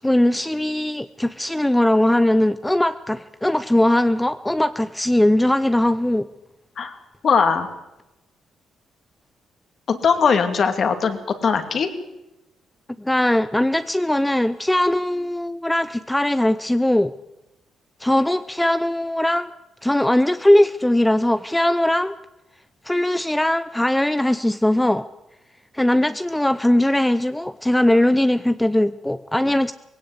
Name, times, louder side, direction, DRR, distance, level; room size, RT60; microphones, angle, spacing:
voice 1, 0.0-6.3 13.0-17.1 18.0-19.5 19.8-22.1 22.8-25.0 25.7-29.7, left 1 dB, 5° left, 0.6 m, -20 dB
voice 2, 7.2-7.7 9.9-11.9, left 6 dB, 50° left, 2.4 m, -20 dB
19.0 x 17.0 x 8.3 m
cardioid pair, 90°, 0 cm